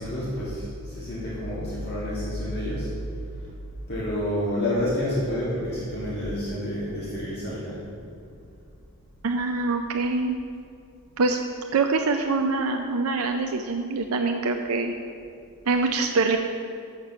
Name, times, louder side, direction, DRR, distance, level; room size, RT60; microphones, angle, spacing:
voice 1, 0.0-2.9 3.4-3.5 3.9-7.8 8.3-8.4, left 1 dB, 45° left, -8 dB, 1.8 m, -29 dB
voice 2, 9.2-10.4 11.2-11.4 11.7-14.9 15.7-16.4, right 3 dB, 75° right, 4 dB, 0.5 m, -24 dB
7.3 x 6.7 x 5.6 m, 2.4 s
head